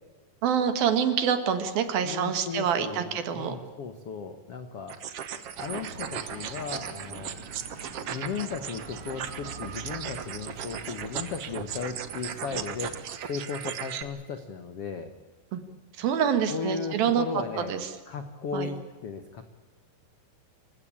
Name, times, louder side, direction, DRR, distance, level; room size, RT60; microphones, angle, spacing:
voice 1, 0.4-3.6 15.5-15.6 16.0-17.2 17.7-17.8 18.5-18.7, right 8 dB, 65° right, 9 dB, 3.3 m, -26 dB
voice 2, 2.0-5.0 5.6-7.4 8.1-15.1 16.5-17.7 18.1-19.4, left 5 dB, 65° left, 8 dB, 1.4 m, -36 dB
sound 1, 4.9-14.0, right 8 dB, 80° right, 1.3 m, -37 dB
sound 2, 5.6-13.0, right 4 dB, 45° right, 2.3 m, -44 dB
28.0 x 16.5 x 8.8 m, 1.3 s
omnidirectional pair, 4.8 m